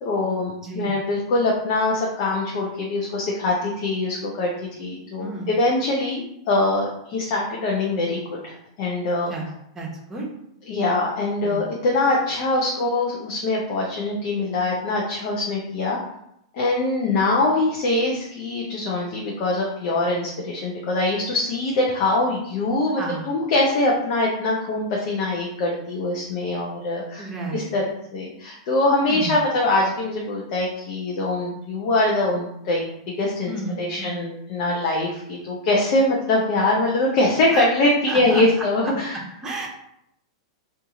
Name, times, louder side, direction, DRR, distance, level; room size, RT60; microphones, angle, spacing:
voice 1, 0.0-4.5 4.8-6.2 6.5-9.3 10.7-16.0 16.5-27.3 27.5-32.9 33.2-33.5 33.8-39.2, left 2 dB, 50° left, -3 dB, 0.7 m, -23 dB
voice 2, 0.6-1.0 5.2-5.5 9.3-9.5 9.7-10.3 11.4-11.7 23.0-23.3 27.2-27.7 29.1-29.4 33.5-34.3 37.5-37.7 38.1-38.4 39.4-39.7, right 2 dB, 15° right, -1 dB, 0.9 m, -32 dB
2.7 x 2.5 x 3.7 m, 0.77 s
hypercardioid pair, 105°, 3 cm